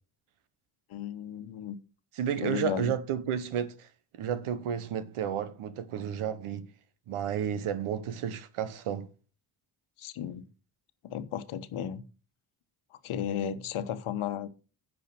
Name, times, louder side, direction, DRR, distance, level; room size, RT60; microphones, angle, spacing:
voice 1, 0.9-1.8 2.4-2.9 10.0-10.5 11.0-12.0 13.0-14.5, left 9 dB, 75° left, 1.2 m, -34 dB
voice 2, 2.1-6.7 7.1-9.1, right 9 dB, 80° right, 1.1 m, -32 dB
9.8 x 4.8 x 6.1 m
supercardioid pair, 50°, 50 cm